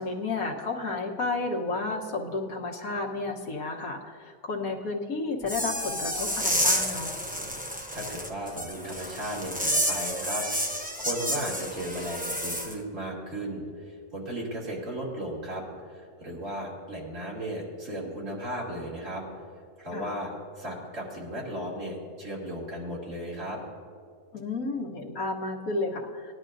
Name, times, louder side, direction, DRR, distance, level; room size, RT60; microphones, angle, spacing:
voice 1, 0.0-7.1 19.9-20.1 24.3-26.3, left 3 dB, 70° left, 0 dB, 1.5 m, -32 dB
sound 1, 5.4-12.7, equal, 10° right, 0.5 m, -30 dB
voice 2, 7.9-10.4 10.7-19.2 19.8-20.3 20.6-23.6, right 1 dB, 60° right, -5 dB, 2.8 m, -35 dB
19.5 x 11.0 x 2.6 m, 2.2 s
omnidirectional pair, 1.6 m